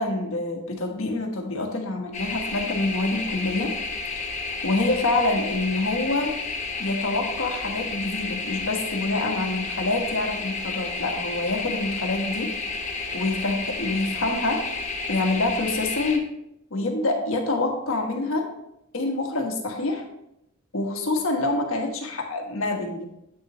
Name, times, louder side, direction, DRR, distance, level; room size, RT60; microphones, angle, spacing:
voice 1, 0.0-3.7 4.6-6.3 6.8-12.5 13.1-14.6 15.1-16.2 16.7-18.5 18.9-20.0 20.7-23.0, left 2 dB, 75° left, 2 dB, 1.3 m, -26 dB
sound 1, 2.1-16.2, left 3 dB, 35° left, 0.9 m, -31 dB
8.4 x 5.7 x 3.0 m, 0.82 s
head